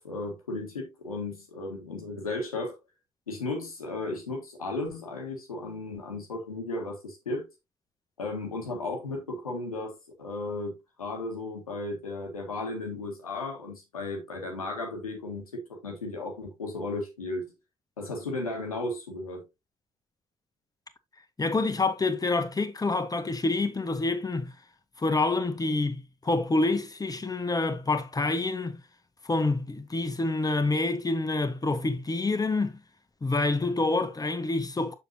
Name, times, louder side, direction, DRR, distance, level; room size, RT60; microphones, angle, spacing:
voice 1, 0.0-2.8 3.3-7.5 8.2-17.5 18.0-19.4, left 2 dB, 85° left, 1.7 m, -35 dB
voice 2, 21.4-24.5 25.0-28.8 29.2-32.8 33.2-34.9, left 3 dB, 20° left, 1.4 m, -27 dB
7.0 x 6.9 x 2.9 m
figure-of-eight pair, 45°, 18 cm